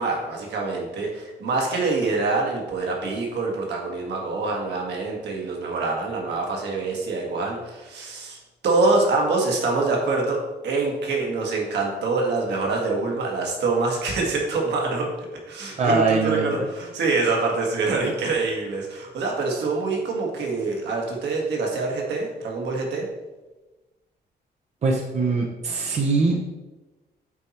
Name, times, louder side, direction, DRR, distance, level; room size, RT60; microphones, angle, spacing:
voice 1, 0.0-8.4 8.6-15.1 15.5-23.1, right 3 dB, 80° right, 0 dB, 1.8 m, -25 dB
voice 2, 15.8-16.7 24.8-26.4, right 3 dB, 40° right, 0 dB, 0.8 m, -22 dB
8.3 x 4.5 x 4.3 m, 1.1 s
wide cardioid pair, 175°, 17 cm